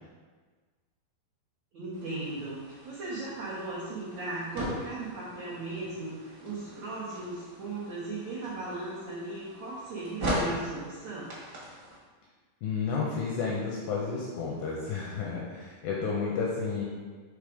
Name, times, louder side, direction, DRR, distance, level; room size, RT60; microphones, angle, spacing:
voice 1, 1.7-11.3, right 2 dB, 90° right, -7 dB, 1.5 m, -37 dB
sound 1, 1.9-12.0, equal, 60° right, 1.2 m, -39 dB
voice 2, 12.6-16.8, left 5 dB, 85° left, -3 dB, 2.0 m, -31 dB
6.4 x 3.4 x 4.9 m, 1.5 s
omnidirectional pair, 4.7 m